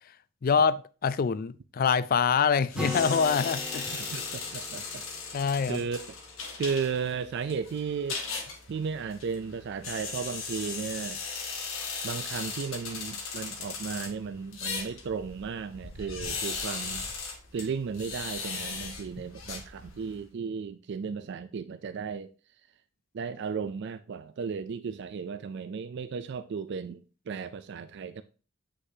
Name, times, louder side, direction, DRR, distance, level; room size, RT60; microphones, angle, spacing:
voice 1, 0.4-3.9 5.3-5.8, left 6 dB, 45° left, 0.4 m, -25 dB
sound 1, 2.7-20.2, left 4 dB, 85° left, 1.6 m, -38 dB
Acoustic guitar, 2.7-6.5, left 1 dB, 5° right, 0.8 m, -40 dB
voice 2, 3.9-5.0 5.3-5.4 5.7-6.0 6.6-8.2 8.7-11.2 12.0-17.0 17.5-22.3 23.1-28.2, right 6 dB, 60° right, 0.4 m, -35 dB
7.7 x 6.3 x 2.7 m
head